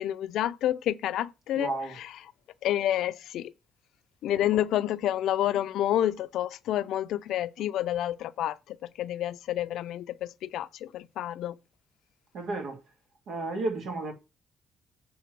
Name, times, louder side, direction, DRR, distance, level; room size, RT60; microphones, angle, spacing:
voice 1, 0.0-1.7 2.0-2.1 2.6-3.5 4.2-11.6, left 12 dB, 80° left, 0.6 m, -29 dB
voice 2, 1.6-1.9 12.3-12.8 13.3-14.1, right 2 dB, 75° right, 2.8 m, -32 dB
8.4 x 3.7 x 6.1 m
cardioid pair, 90°, 0 cm